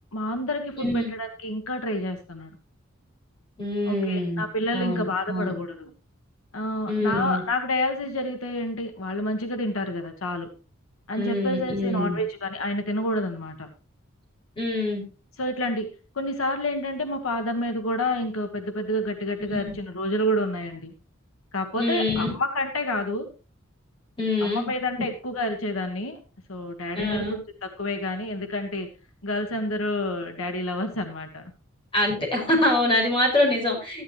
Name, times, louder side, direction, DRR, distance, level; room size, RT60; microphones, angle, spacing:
voice 1, 0.1-2.5 3.9-5.9 6.5-10.5 11.1-13.7 15.4-15.9 16.1-20.9 21.5-23.3 24.4-26.2 26.5-28.9 29.2-31.4, left 1 dB, 85° left, 5 dB, 1.6 m, -29 dB
voice 2, 0.8-1.1 3.6-4.4 4.7-5.5 6.9-7.4 11.1-12.2 14.6-15.0 19.5-19.8 21.7-22.3 24.2-24.7 26.9-27.4 31.9-34.0, left 1 dB, 25° left, -2 dB, 5.6 m, -25 dB
14.0 x 11.0 x 3.0 m, 0.33 s
head